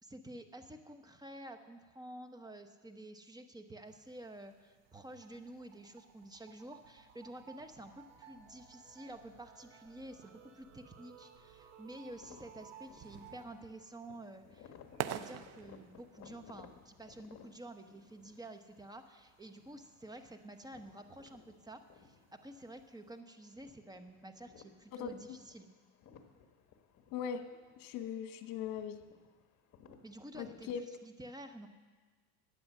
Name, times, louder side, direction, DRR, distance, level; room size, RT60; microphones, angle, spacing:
voice 1, 0.0-25.7 30.0-31.7, right 1 dB, 10° right, 7 dB, 0.9 m, -50 dB
sound 1, 3.8-23.2, right 12 dB, 40° right, 0.5 m, -52 dB
sound 2, 4.8-13.4, right 7 dB, 75° right, 3.3 m, -58 dB
sound 3, 12.1-30.7, left 7 dB, 45° left, 1.5 m, -60 dB
voice 2, 27.1-27.5 27.8-29.0 30.3-30.8, left 7 dB, 65° left, 8 dB, 1.3 m, -39 dB
14.0 x 9.4 x 7.2 m, 1.4 s
supercardioid pair, 115°, 40 cm